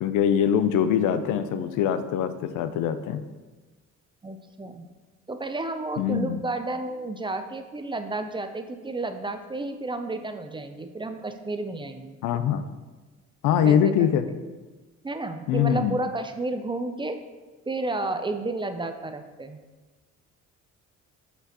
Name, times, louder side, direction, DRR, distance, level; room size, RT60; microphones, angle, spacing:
voice 1, 0.0-3.2 6.0-6.4 12.2-12.7 13.4-14.3 15.5-16.0, left 9 dB, 90° left, 11 dB, 0.5 m, -23 dB
voice 2, 4.2-4.9 5.3-12.2 13.6-13.9 15.0-17.2 17.7-19.6, right 2 dB, 15° right, 8 dB, 0.4 m, -31 dB
6.0 x 5.6 x 2.9 m, 1.3 s
cardioid pair, 90°, 30 cm